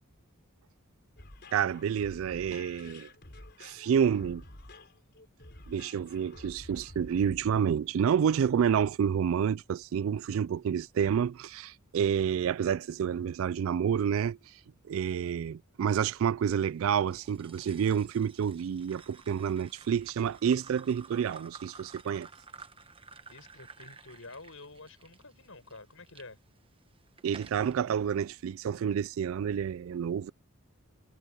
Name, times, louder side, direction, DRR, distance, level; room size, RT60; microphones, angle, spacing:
sound 1, 1.2-7.6, left 2 dB, 50° left, 4.1 m, -50 dB
voice 1, 1.5-3.1 3.6-4.4 5.7-14.5 14.9-22.3 27.2-30.3, right 8 dB, 65° right, 0.3 m, -29 dB
sound 2, 17.1-26.3 26.8-27.8, right 5 dB, 25° right, 1.1 m, -52 dB
voice 2, 23.3-26.4, left 3 dB, 65° left, 6.9 m, -49 dB
head